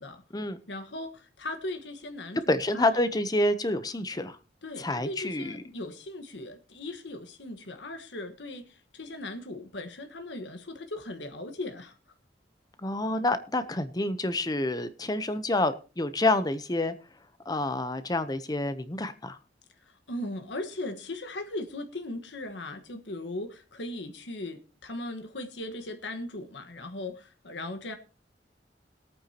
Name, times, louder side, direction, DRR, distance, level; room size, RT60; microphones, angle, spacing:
voice 1, 0.7-3.0 4.6-12.0 19.8-28.0, left 2 dB, 85° left, 1.4 m, -38 dB
voice 2, 2.5-4.4 4.8-5.6 12.8-16.9 17.5-19.4, left 2 dB, 20° left, 0.7 m, -28 dB
21.0 x 9.1 x 2.9 m
head